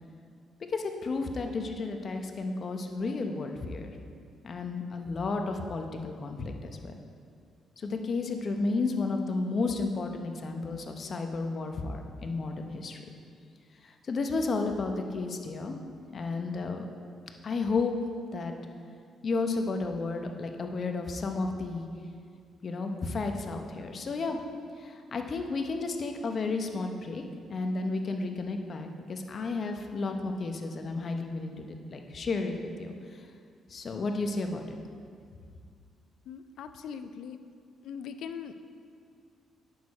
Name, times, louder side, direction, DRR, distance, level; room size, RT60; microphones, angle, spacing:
voice 1, 0.7-3.9 4.4-6.9 7.8-13.1 13.8-15.8 16.1-16.9 17.4-17.9 18.3-18.5 19.2-21.9 22.6-24.4 24.8-27.2 27.5-32.9 33.7-34.8, left 3 dB, 40° left, 5 dB, 0.8 m, -32 dB
voice 2, 36.3-37.4 37.8-38.5, left 7 dB, 75° left, 10 dB, 0.4 m, -40 dB
9.3 x 6.5 x 4.2 m, 2.3 s
cardioid pair, 110°, 0 cm